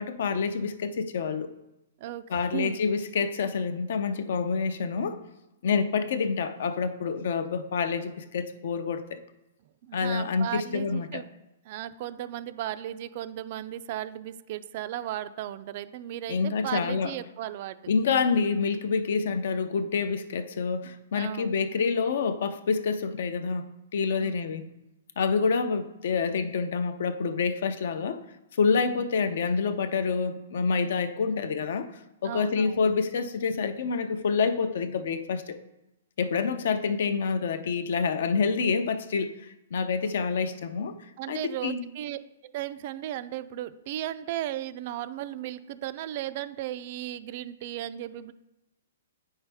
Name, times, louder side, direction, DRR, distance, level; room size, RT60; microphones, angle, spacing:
voice 1, 0.0-1.5 2.3-5.2 5.6-9.2 9.9-11.2 16.3-17.1 17.9-23.6 23.9-24.6 25.2-28.2 28.6-31.9 32.2-35.6 36.2-39.3 39.7-40.9 41.3-41.8, left 5 dB, 60° left, 11 dB, 0.6 m, -27 dB
voice 2, 2.0-2.8 9.8-11.3 11.7-17.9 21.1-21.5 24.2-24.4 28.9-29.0 32.2-32.8 36.4-36.5 41.2-48.3, right 12 dB, 40° right, 13 dB, 0.3 m, -36 dB
8.7 x 5.5 x 3.4 m, 0.98 s
hypercardioid pair, 165°, 0 cm